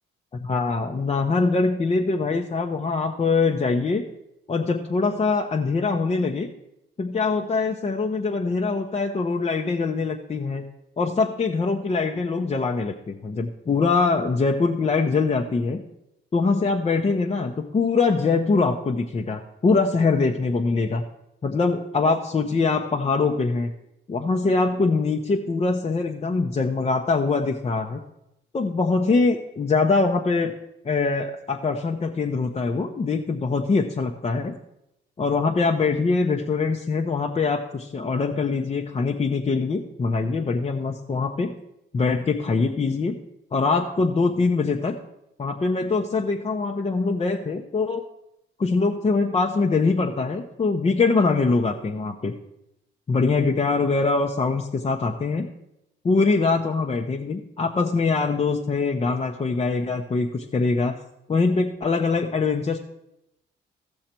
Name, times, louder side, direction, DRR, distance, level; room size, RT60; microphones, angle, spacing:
voice 1, 0.4-4.0 4.5-6.5 7.0-10.6 11.0-15.8 16.3-21.0 21.4-23.7 24.1-28.0 28.5-30.5 30.8-34.5 35.2-41.5 41.9-43.2 43.5-44.9 45.4-48.0 48.6-52.3 53.1-55.5 56.0-61.0 61.3-62.8, left 4 dB, 30° left, 1 dB, 0.8 m, -23 dB
15.0 x 6.4 x 4.4 m, 0.87 s
cardioid pair, 90°, 20 cm